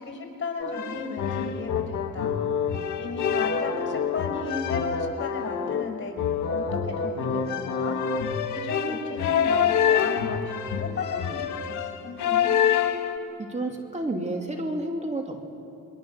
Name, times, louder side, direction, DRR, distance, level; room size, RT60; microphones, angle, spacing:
voice 1, 0.0-2.4 3.0-8.0 8.5-12.5, left 4 dB, 40° left, 4 dB, 5.3 m, -34 dB
sound 1, 0.6-13.2, left 7 dB, 70° left, 1.8 m, -26 dB
voice 2, 13.4-15.4, right 2 dB, 20° right, 2 dB, 2.7 m, -30 dB
28.5 x 22.5 x 6.5 m, 2.6 s
cardioid pair, 90°, 30 cm